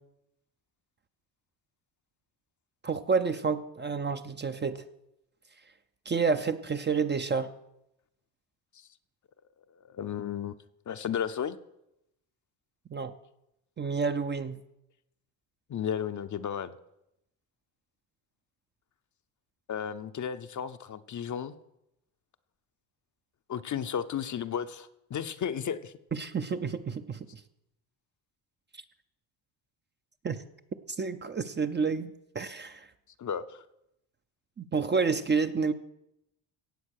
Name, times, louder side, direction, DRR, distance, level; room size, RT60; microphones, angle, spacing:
voice 1, 2.8-4.8 6.1-7.5 12.9-13.1 13.8-14.6 26.1-27.4 30.2-30.4 31.0-32.1 32.3-32.9 34.6-35.7, right 5 dB, 25° right, 9 dB, 0.6 m, -29 dB
voice 2, 9.8-10.5 10.9-11.6 15.7-16.7 19.7-21.5 23.5-25.9 33.2-33.6, left 8 dB, 40° left, 10 dB, 0.7 m, -34 dB
16.5 x 7.9 x 6.5 m, 0.84 s
cardioid pair, 105°, 47 cm